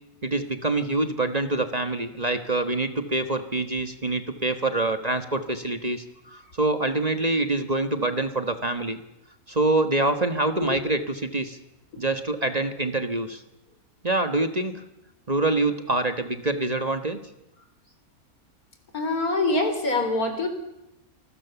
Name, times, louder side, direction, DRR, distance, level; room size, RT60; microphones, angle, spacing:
voice 1, 0.2-6.0 6.3-9.0 9.5-11.6 12.0-13.4 14.0-14.8 15.3-17.2, right 2 dB, 30° right, 9 dB, 1.5 m, -25 dB
voice 2, 18.9-20.5, left 2 dB, 80° left, 7 dB, 4.4 m, -24 dB
27.5 x 20.0 x 7.1 m, 0.87 s
omnidirectional pair, 1.5 m